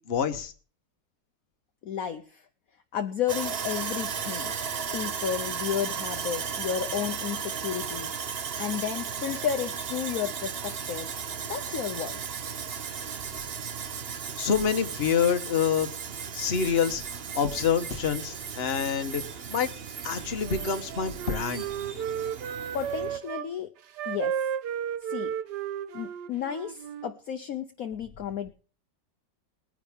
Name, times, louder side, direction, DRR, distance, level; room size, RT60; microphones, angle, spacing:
voice 1, 0.1-0.5 14.4-15.9 16.3-19.2 19.5-19.7 20.0-21.6, left 7 dB, 40° left, 8 dB, 1.3 m, -27 dB
voice 2, 1.8-2.4 2.9-4.5 4.9-11.1 11.5-12.2 22.7-23.7 24.1-24.4 25.1-25.3 25.9-28.5, left 9 dB, 60° left, 7 dB, 1.1 m, -32 dB
Sawing, 3.3-23.2, right 6 dB, 45° right, 0.8 m, -35 dB
Wind instrument woodwind instrument, 20.3-23.5 24.0-27.1, right 9 dB, 70° right, 1.5 m, -34 dB
20.5 x 10.0 x 3.6 m, 0.39 s
omnidirectional pair, 1.9 m